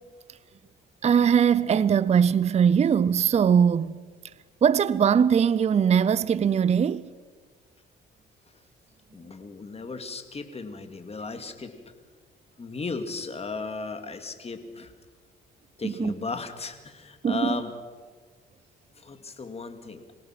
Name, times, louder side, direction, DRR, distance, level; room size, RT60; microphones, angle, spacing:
voice 1, 1.0-4.0 4.6-7.1 15.8-16.1 17.2-17.6, right 7 dB, 35° right, 0.5 m, -21 dB
voice 2, 9.1-11.7 12.6-14.9 15.8-17.7 19.0-20.0, left 4 dB, 30° left, 2.3 m, -35 dB
25.5 x 17.5 x 6.0 m
cardioid pair, 90°, 20 cm